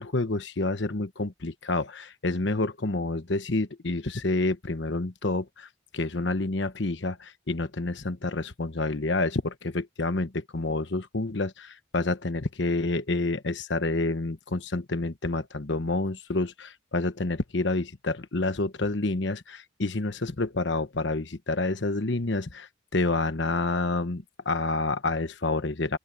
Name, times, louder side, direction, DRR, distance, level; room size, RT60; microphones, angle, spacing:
voice 1, 0.0-5.7 5.9-26.0, left 2 dB, 65° left, 1.1 m, -28 dB
open air
head